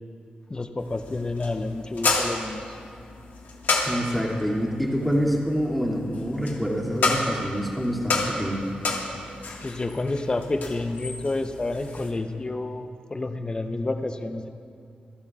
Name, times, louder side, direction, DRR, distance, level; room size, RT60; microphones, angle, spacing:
voice 1, 0.5-2.8 9.6-14.5, left 2 dB, 25° left, 7 dB, 0.7 m, -29 dB
sound 1, 0.8-12.1, left 3 dB, 75° left, 1.7 m, -31 dB
voice 2, 3.8-8.6, equal, ahead, -3 dB, 2.5 m, -26 dB
27.5 x 12.0 x 2.4 m, 2.4 s
cardioid pair, 85°, 3 cm